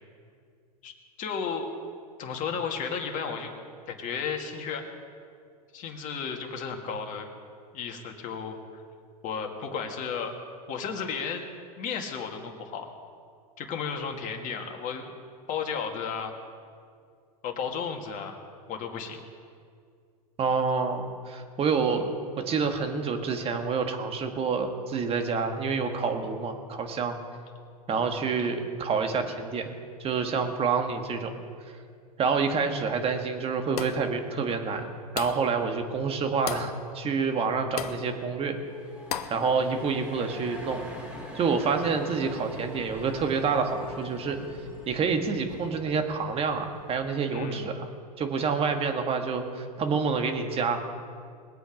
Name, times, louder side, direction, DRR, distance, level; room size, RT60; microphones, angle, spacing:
voice 1, 1.2-1.7 2.2-3.5 3.9-4.8 5.7-7.3 7.7-8.6 9.2-10.4 10.7-11.5 11.8-12.9 13.6-15.1 15.5-16.3 17.4-18.4 18.7-19.2 28.4-28.5 47.3-47.7, left 6 dB, 40° left, 3 dB, 2.1 m, -33 dB
voice 2, 20.4-22.1 22.4-27.2 27.9-29.7 30.0-31.3 32.2-38.6 39.3-40.8 41.4-44.4 44.9-47.9 48.2-50.8, right 5 dB, 30° right, 5 dB, 1.7 m, -28 dB
sound 1, 33.8-34.1 35.2-35.5 36.5-36.8 37.8-38.0 39.1-39.4, left 9 dB, 75° left, 1.0 m, -34 dB
sound 2, 38.5-47.2, equal, 5° right, 3.8 m, -45 dB
21.5 x 8.1 x 5.2 m, 2.2 s
hypercardioid pair, 105°, 20 cm